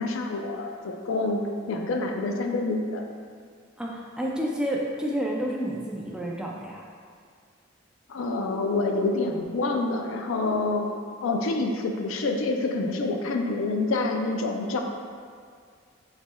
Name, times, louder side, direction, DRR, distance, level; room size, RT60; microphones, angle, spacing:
voice 1, 0.0-1.4 1.7-3.0 8.1-10.9 11.2-14.8, left 3 dB, 75° left, 3 dB, 0.4 m, -27 dB
voice 2, 3.8-6.8, equal, 5° right, -3 dB, 0.4 m, -30 dB
7.0 x 3.3 x 2.2 m, 2.2 s
head